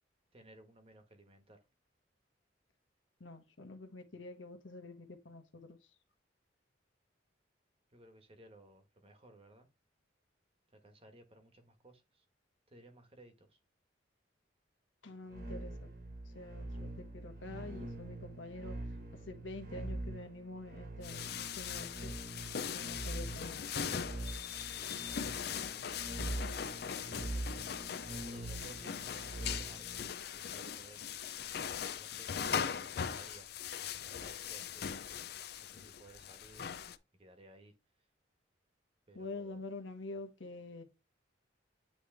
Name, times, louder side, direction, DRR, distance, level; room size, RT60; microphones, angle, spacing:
voice 1, 0.3-1.6 7.9-9.7 10.7-12.2 12.7-13.6 25.0-27.7 28.2-31.1 31.9-33.8 34.1-34.9 35.6-36.8 37.2-37.7 39.1-39.6, right 2 dB, 30° right, 1.3 m, -59 dB
voice 2, 3.2-5.8 15.0-15.9 16.3-18.8 19.3-22.1 22.7-23.8 39.1-40.8, left 2 dB, 85° left, 1.3 m, -47 dB
sound 1, 15.3-30.1, right 1 dB, 50° right, 1.4 m, -44 dB
sound 2, 21.0-37.0, left 8 dB, 55° left, 0.5 m, -40 dB
9.0 x 3.2 x 3.3 m
head